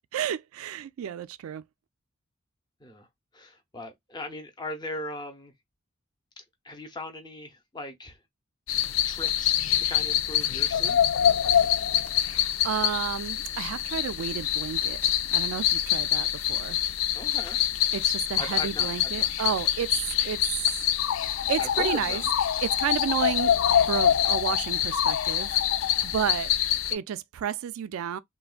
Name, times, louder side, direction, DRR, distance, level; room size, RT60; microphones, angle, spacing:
voice 1, 0.1-1.6 12.2-16.8 17.9-20.0 20.2-20.4 21.5-22.2 22.6-23.6 23.9-25.6 26.0-26.5 26.9-28.2, right 8 dB, 80° right, 0.3 m, -31 dB
voice 2, 3.3-5.5 6.4-8.2 9.1-11.0 17.1-17.6 18.4-19.3 21.6-22.3, left 1 dB, 20° left, 0.7 m, -39 dB
sound 1, 8.7-26.9, left 10 dB, 70° left, 0.3 m, -25 dB
3.4 x 2.2 x 2.4 m
head